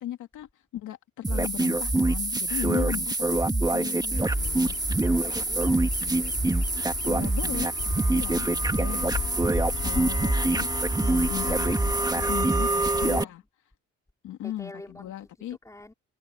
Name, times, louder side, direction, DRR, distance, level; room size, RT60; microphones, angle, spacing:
voice 1, 0.0-4.7 7.0-9.0 9.8-11.8 12.1-13.4 14.2-15.6, left 12 dB, 80° left, 2.4 m, -37 dB
sound 1, 1.2-13.2, right 2 dB, 15° right, 1.9 m, -25 dB
Bird vocalization bird call bird song, 4.2-13.2, left 5 dB, 40° left, 3.0 m, -36 dB
voice 2, 5.0-5.8 12.9-13.4 14.4-15.4 15.6-15.9, left 1 dB, 10° left, 5.2 m, -45 dB
cardioid pair, 90°, 30 cm